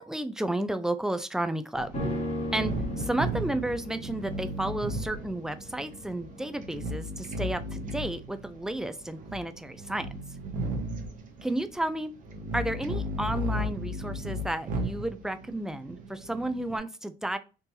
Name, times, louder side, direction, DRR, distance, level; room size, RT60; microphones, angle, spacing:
voice 1, 0.0-2.0 2.5-10.1 11.4-12.1 12.5-17.4, right 1 dB, 5° right, 9 dB, 0.4 m, -32 dB
sound 1, 1.7-16.8, right 1 dB, 50° right, 0.9 m, -35 dB
sound 2, 1.9-11.3 11.6-11.7, left 1 dB, 40° left, 1.1 m, -39 dB
3.8 x 2.5 x 2.8 m, 0.31 s
cardioid pair, 110°, 17 cm